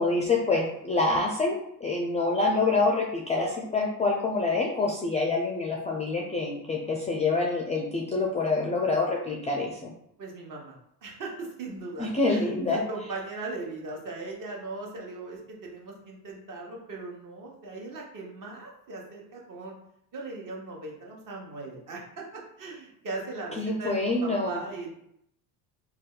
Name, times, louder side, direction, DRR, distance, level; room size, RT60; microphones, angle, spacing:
voice 1, 0.0-9.9 12.0-12.8 23.5-24.6, left 3 dB, 15° left, -1 dB, 0.4 m, -26 dB
voice 2, 10.2-10.7 11.0-19.7 20.1-24.9, right 3 dB, 45° right, -1 dB, 1.1 m, -39 dB
2.6 x 2.2 x 3.8 m, 0.74 s
supercardioid pair, 80°, 46 cm